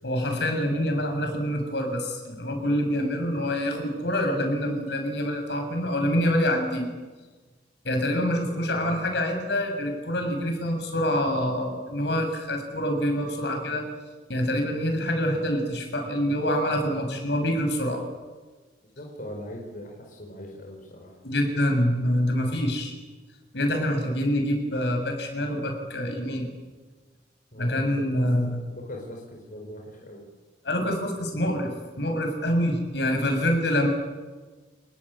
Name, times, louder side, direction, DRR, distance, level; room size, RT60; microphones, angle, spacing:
voice 1, 0.0-6.9 7.8-13.8 14.3-18.0 21.2-22.9 23.5-26.5 27.6-28.6 30.7-31.7 32.0-33.9, equal, 70° left, 4 dB, 7.0 m, -26 dB
voice 2, 8.1-9.0 19.0-21.2 27.5-30.2, left 1 dB, 50° left, 0 dB, 5.2 m, -41 dB
29.5 x 20.5 x 8.8 m, 1.3 s
head